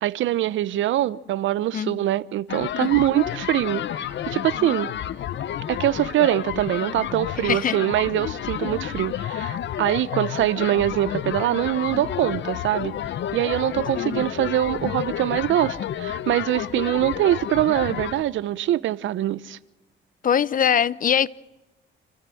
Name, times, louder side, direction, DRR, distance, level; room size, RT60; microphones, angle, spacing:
voice 1, 0.0-4.9 5.7-12.9 13.3-19.6, right 13 dB, 75° right, 0.8 m, -23 dB
sound 1, 2.5-18.2, left 10 dB, 70° left, 1.0 m, -30 dB
voice 2, 7.4-7.8 14.0-14.3 20.2-21.3, left 8 dB, 45° left, 0.7 m, -22 dB
27.5 x 14.0 x 7.8 m
cardioid pair, 90°, 20 cm